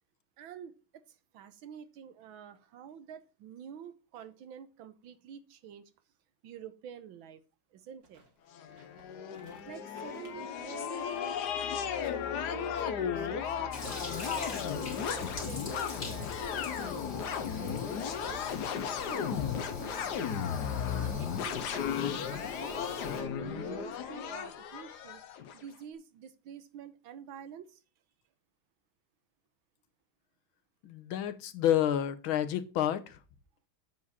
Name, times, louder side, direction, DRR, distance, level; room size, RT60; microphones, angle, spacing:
voice 1, 0.4-0.7 1.1-5.9 6.4-7.4 7.7-8.2 9.7-11.4 11.7-12.1 12.4-15.2 15.4-20.3 20.7-25.2 25.5-27.8, right 8 dB, 75° right, 1.6 m, -48 dB
sound 1, 7.9-15.2, right 2 dB, 60° right, 3.2 m, -61 dB
sound 2, 8.5-25.6, left 8 dB, 60° left, 1.3 m, -35 dB
Toilet flush, 13.7-23.2, left 4 dB, 45° left, 2.6 m, -42 dB
voice 2, 30.8-33.2, left 11 dB, 75° left, 1.7 m, -29 dB
8.5 x 7.3 x 4.2 m
omnidirectional pair, 2.3 m